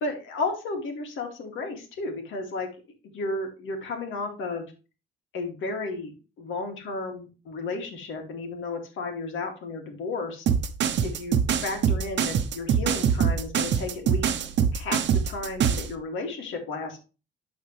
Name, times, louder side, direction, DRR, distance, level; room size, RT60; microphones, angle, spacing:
voice 1, 0.0-2.7 3.1-4.7 5.3-6.1 6.4-10.5 11.0-14.3 14.7-17.0, left 3 dB, 80° left, 3 dB, 2.4 m, -33 dB
sound 1, 10.5-15.9, right 8 dB, 65° right, 0.8 m, -24 dB
12.5 x 4.2 x 3.2 m, 0.32 s
cardioid pair, 90°, 20 cm